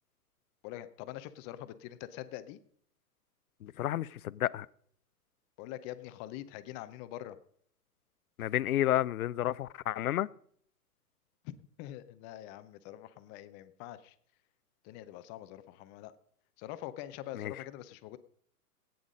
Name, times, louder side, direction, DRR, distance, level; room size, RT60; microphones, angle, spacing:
voice 1, 0.6-2.6 5.6-7.4 11.4-14.2 14.8-16.1 16.6-18.2, left 13 dB, 25° left, 0.6 m, -44 dB
voice 2, 3.6-4.7 8.4-10.3 17.4-17.5, left 13 dB, 65° left, 0.6 m, -31 dB
15.5 x 9.4 x 5.1 m
figure-of-eight pair, 115°, 47 cm